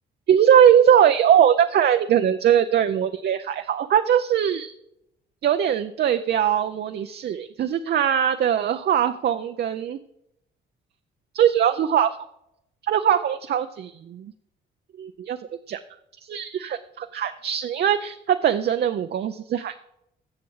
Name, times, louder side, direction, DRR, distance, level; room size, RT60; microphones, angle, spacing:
voice 1, 0.3-4.7 5.4-10.0 11.3-12.1 12.9-14.3 15.0-15.4 15.7-15.8 16.2-19.7, right 9 dB, 55° right, 8 dB, 0.5 m, -21 dB
16.0 x 5.9 x 4.7 m, 0.82 s
cardioid pair, 90°, 20 cm